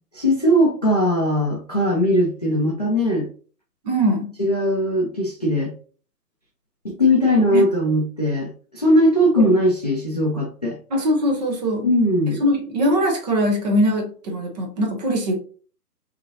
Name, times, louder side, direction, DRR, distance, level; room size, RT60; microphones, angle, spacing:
voice 1, 0.2-3.3 4.4-5.7 6.8-10.8 11.8-12.4, equal, 25° left, -2 dB, 0.4 m, -19 dB
voice 2, 3.8-4.3 7.5-7.6 9.4-9.5 10.9-11.8 12.4-15.3, equal, 25° right, 2 dB, 1.0 m, -21 dB
5.0 x 3.1 x 2.8 m, 0.41 s
hypercardioid pair, 145°, 48 cm